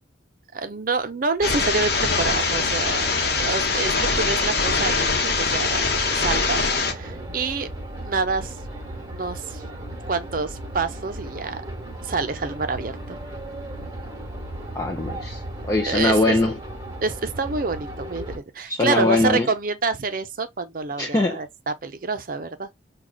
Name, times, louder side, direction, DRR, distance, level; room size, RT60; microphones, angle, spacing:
voice 1, 0.5-3.1 3.4-5.1 5.4-5.8 6.1-7.7 8.1-8.6 8.9-9.6 10.1-11.6 12.0-13.2 15.9-16.4 17.0-22.7, right 4 dB, 50° right, 0.6 m, -27 dB
sound 1, 1.4-6.9, left 4 dB, 60° left, 0.9 m, -23 dB
sound 2, 1.4-18.4, right 1 dB, 20° right, 1.1 m, -36 dB
voice 2, 14.7-16.5 18.7-19.5 21.0-21.4, left 2 dB, 20° left, 0.5 m, -22 dB
6.1 x 2.3 x 2.3 m
head